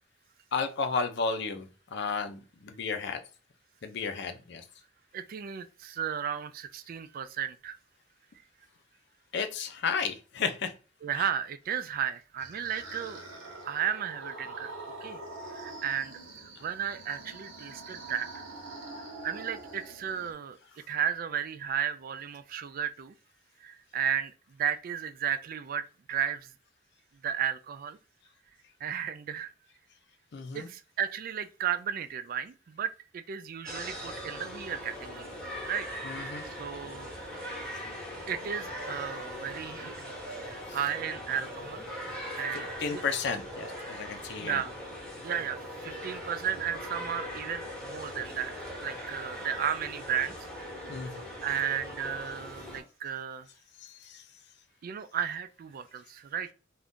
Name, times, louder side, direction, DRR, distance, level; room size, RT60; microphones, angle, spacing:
voice 1, 0.5-3.2 3.8-4.6 9.3-10.7 11.1-11.3 30.3-30.7 36.0-36.4 40.7-40.9 42.5-44.6 50.8-51.2 53.8-54.2, left 5 dB, 60° left, 0.5 m, -33 dB
voice 2, 5.1-7.7 11.0-13.3 13.6-14.7 15.0-15.2 15.5-16.1 16.6-18.3 19.2-20.6 20.9-23.1 23.6-24.3 24.6-26.5 27.2-28.0 28.8-29.5 30.5-35.3 35.6-35.9 36.2-36.3 36.6-37.1 38.3-41.8 42.4-43.0 44.4-44.7 45.2-48.5 48.8-50.3 51.4-53.5 54.8-56.5, right 8 dB, 45° right, 0.3 m, -34 dB
sound 1, 11.9-20.3, right 2 dB, 75° right, 0.9 m, -44 dB
sound 2, 33.7-52.8, equal, 5° left, 0.9 m, -40 dB
2.6 x 2.4 x 3.5 m
head